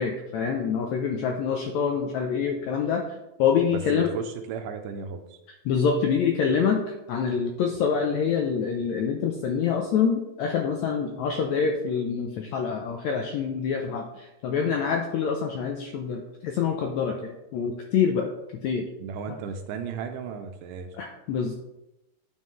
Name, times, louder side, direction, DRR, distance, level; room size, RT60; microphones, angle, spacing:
voice 1, 0.0-3.0 3.4-4.1 5.6-6.8 7.1-18.2 18.6-18.9 21.0-21.5, left 6 dB, 80° left, 2 dB, 1.6 m, -26 dB
voice 2, 3.7-5.4 19.0-20.9, right 6 dB, 80° right, 7 dB, 2.2 m, -35 dB
9.5 x 5.6 x 3.1 m, 0.92 s
omnidirectional pair, 3.9 m